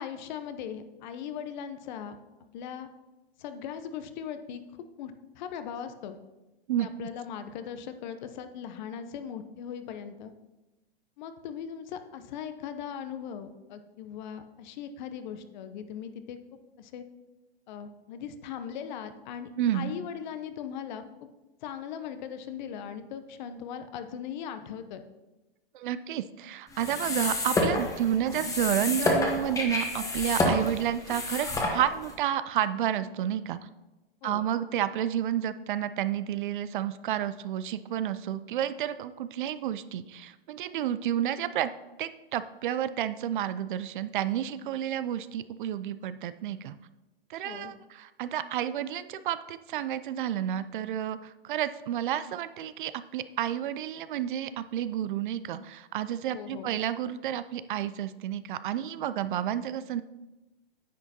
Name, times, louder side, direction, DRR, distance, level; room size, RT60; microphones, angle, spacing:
voice 1, 0.0-2.2 2.5-2.9 3.4-4.6 5.0-6.2 6.8-10.3 11.2-17.0 17.7-21.0 21.6-25.0 34.2-34.5 47.4-47.7 56.3-56.7, left 8 dB, 50° left, 9 dB, 0.8 m, -39 dB
voice 2, 19.6-19.9 25.7-33.7 34.2-41.7 42.0-46.8 47.3-60.0, right 11 dB, 55° right, 14 dB, 0.5 m, -30 dB
sound 1, 26.7-32.1, left 2 dB, 10° left, 1.2 m, -29 dB
9.8 x 7.9 x 2.8 m, 1.0 s
hypercardioid pair, 115°, 30 cm